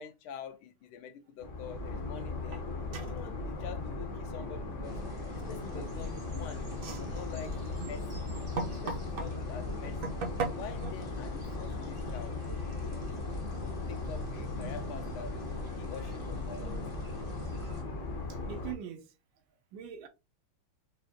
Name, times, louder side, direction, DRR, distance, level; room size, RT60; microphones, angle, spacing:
voice 1, 0.0-2.6 3.0-5.0 5.3-6.7 7.0-8.3 8.7-10.2 10.5-12.4 12.8-13.3 13.6-15.3 15.8-16.8, left 6 dB, 85° left, 1.5 m, -46 dB
sound 1, 1.4-18.7, left 3 dB, 60° left, 0.7 m, -38 dB
sound 2, 2.5-2.6 2.9-3.2 5.6-6.1 6.7-9.3 9.8-10.9, right 3 dB, 60° right, 1.0 m, -37 dB
sound 3, 4.8-17.8, right 2 dB, 30° right, 0.7 m, -48 dB
voice 2, 15.6-16.1 16.6-16.9 17.6-17.7 18.4-19.1 19.7-20.1, right 9 dB, 75° right, 1.3 m, -44 dB
4.8 x 2.5 x 2.6 m
omnidirectional pair, 2.3 m